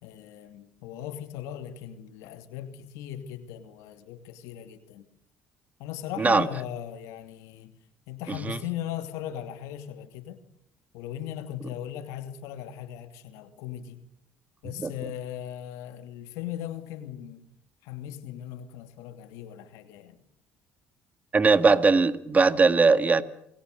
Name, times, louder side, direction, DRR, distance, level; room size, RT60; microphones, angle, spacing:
voice 1, 0.0-5.1 5.8-7.8 8.1-10.4 10.9-14.0 14.6-17.5 17.8-20.2, left 11 dB, 80° left, 2.6 m, -38 dB
voice 2, 6.2-6.5 8.5-8.6 14.8-14.9 21.3-23.2, right 4 dB, 30° right, 2.0 m, -20 dB
29.5 x 22.0 x 6.7 m
supercardioid pair, 70°, 5 cm